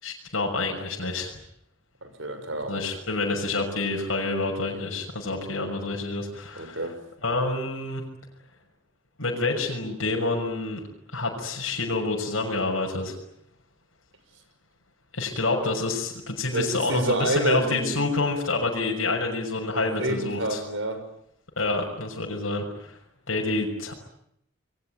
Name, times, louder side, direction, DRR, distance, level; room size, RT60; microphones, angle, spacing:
voice 1, 0.0-1.3 2.7-6.8 7.2-8.0 9.2-10.8 11.1-13.2 15.1-20.6 21.6-23.0 23.3-23.9, left 3 dB, 90° left, 0 dB, 6.3 m, -28 dB
voice 2, 2.0-2.9 6.6-7.0 16.5-18.0 19.7-21.0, right 1 dB, 70° right, 9 dB, 6.2 m, -28 dB
28.0 x 22.5 x 9.3 m, 0.74 s
head